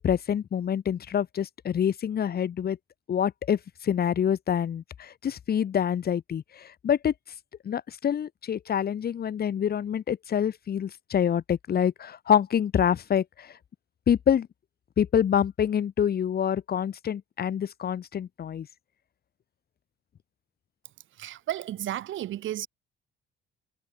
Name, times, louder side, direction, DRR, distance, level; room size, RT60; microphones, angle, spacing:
voice 1, 0.0-2.8 3.1-7.1 7.6-13.5 14.1-14.5 15.0-18.7, left 9 dB, 50° left, 1.3 m, -26 dB
voice 2, 21.1-22.7, right 13 dB, 75° right, 2.3 m, -33 dB
cardioid pair, 90°, 20 cm